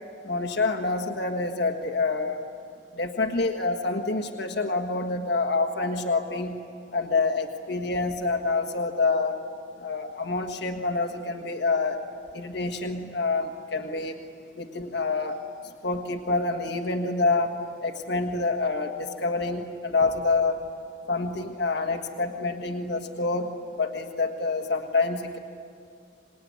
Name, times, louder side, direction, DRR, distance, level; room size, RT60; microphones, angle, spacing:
voice 1, 0.2-2.4 2.9-6.6 6.9-9.4 9.8-12.0 12.3-14.1 14.6-15.4 15.8-17.5 17.8-20.6 21.1-25.4, left 3 dB, 60° left, 4 dB, 1.6 m, -27 dB
26.0 x 20.5 x 9.6 m, 2.3 s
head